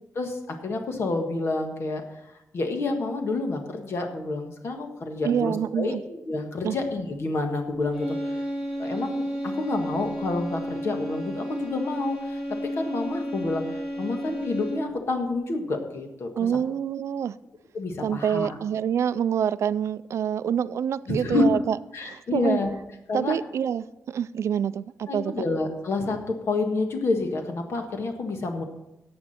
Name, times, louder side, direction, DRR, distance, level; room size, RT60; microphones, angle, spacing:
voice 1, 0.1-2.0 2.5-8.2 8.8-13.6 14.0-16.5 17.7-18.5 21.1-21.4 21.9-22.7 23.1-23.3 25.1-28.6, left 3 dB, 55° left, 1.6 m, -29 dB
voice 2, 5.2-6.0 6.6-6.8 16.4-17.3 18.0-22.6 23.1-25.3, right 8 dB, 65° right, 0.3 m, -26 dB
sound 1, 7.9-15.1, equal, 10° left, 2.5 m, -32 dB
14.0 x 8.6 x 4.3 m
wide cardioid pair, 180°, 5 cm